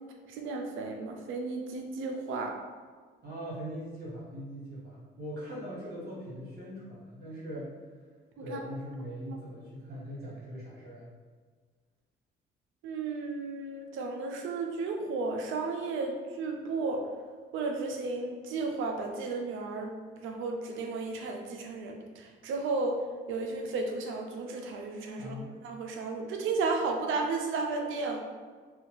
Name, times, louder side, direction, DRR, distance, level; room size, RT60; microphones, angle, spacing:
voice 1, 0.4-2.5 8.4-8.6 12.8-17.0 17.5-19.9 20.2-23.0 23.3-25.3 25.6-28.2, right 3 dB, 80° right, 3 dB, 0.5 m, -33 dB
voice 2, 3.2-7.7 8.4-11.1 25.2-25.5, equal, 55° right, -7 dB, 1.4 m, -41 dB
2.7 x 2.4 x 3.0 m, 1.5 s
cardioid pair, 90°, 20 cm